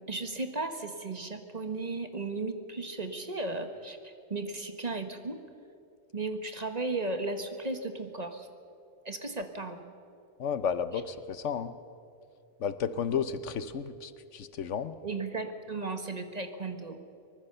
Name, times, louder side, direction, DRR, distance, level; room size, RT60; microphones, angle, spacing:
voice 1, 0.1-5.4 6.1-8.5 9.0-9.8 15.0-17.0, right 3 dB, 35° right, 7 dB, 1.4 m, -35 dB
voice 2, 10.4-11.7 12.6-15.0, left 7 dB, 75° left, 12 dB, 1.2 m, -32 dB
23.5 x 20.0 x 6.8 m, 2.5 s
omnidirectional pair, 1.3 m